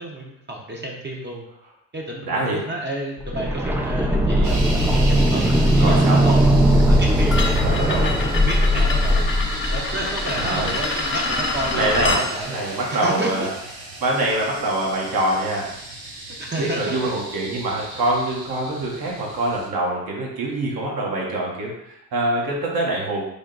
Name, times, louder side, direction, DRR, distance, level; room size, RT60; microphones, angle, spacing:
voice 1, 0.0-1.4 1.9-4.7 5.1-6.5 7.0-9.3 9.7-12.5 12.9-13.5 16.4-17.0, right 1 dB, 25° right, -2 dB, 0.8 m, -30 dB
voice 2, 2.2-2.6 5.8-6.2 7.6-8.0 10.4-10.7 11.7-13.5 14.0-15.7 16.6-23.3, right 1 dB, 60° right, -2 dB, 1.1 m, -24 dB
sound 1, 3.2-11.0 11.3-11.4, equal, 5° right, 0.3 m, -19 dB
sound 2, 4.4-19.7, right 2 dB, 90° right, 1.0 m, -36 dB
sound 3, 7.3-12.3, left 3 dB, 30° left, 0.6 m, -27 dB
3.5 x 2.2 x 3.9 m, 0.83 s
supercardioid pair, 65°, 40 cm